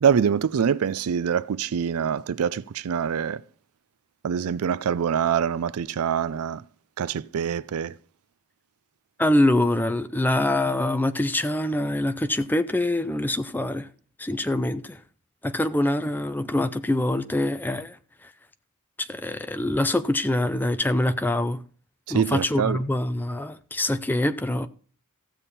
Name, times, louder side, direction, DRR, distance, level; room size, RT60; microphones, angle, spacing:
voice 1, 0.0-3.4 4.2-6.6 7.0-7.9 22.1-22.8, right 7 dB, 75° right, 0.4 m, -24 dB
voice 2, 9.2-13.9 14.2-15.0 15.4-18.0 18.2-18.3 19.0-21.6 22.1-24.7, left 1 dB, 10° left, 0.5 m, -24 dB
15.5 x 7.1 x 4.2 m
head